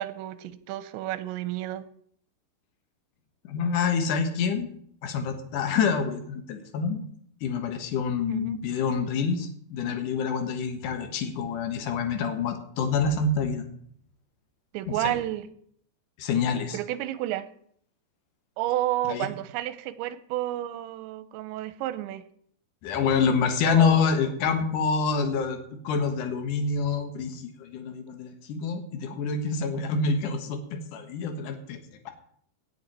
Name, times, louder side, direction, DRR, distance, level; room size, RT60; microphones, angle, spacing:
voice 1, 0.0-1.9 8.3-8.6 14.7-15.5 16.7-17.5 18.6-22.2 23.7-24.2, right 14 dB, 90° right, 14 dB, 3.0 m, -31 dB
voice 2, 3.5-4.7 5.0-7.0 7.4-13.6 14.9-15.2 16.2-16.8 19.1-19.3 22.8-25.6 25.8-31.8 32.1-32.2, left 5 dB, 65° left, 7 dB, 2.2 m, -27 dB
17.5 x 8.0 x 4.3 m, 0.64 s
omnidirectional pair, 5.1 m